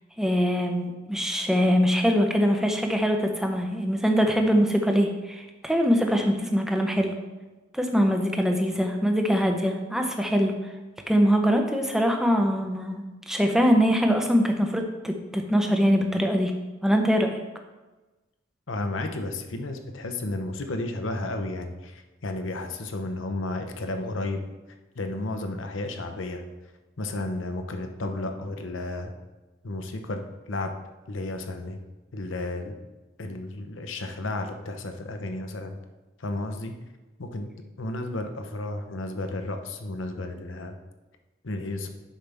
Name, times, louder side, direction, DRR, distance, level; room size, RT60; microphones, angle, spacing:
voice 1, 0.2-7.1 7.7-10.5 11.1-13.0 13.3-16.5 16.8-17.4, equal, 5° right, 3 dB, 0.7 m, -23 dB
voice 2, 18.7-24.4 24.9-26.4 27.0-29.1 29.6-30.2 30.5-30.7 31.1-31.8 32.1-32.7 33.2-35.7 36.2-36.7 37.2-37.5 37.8-40.8 41.4-41.9, left 2 dB, 80° left, 6 dB, 0.8 m, -32 dB
10.0 x 5.6 x 3.5 m, 1.2 s
head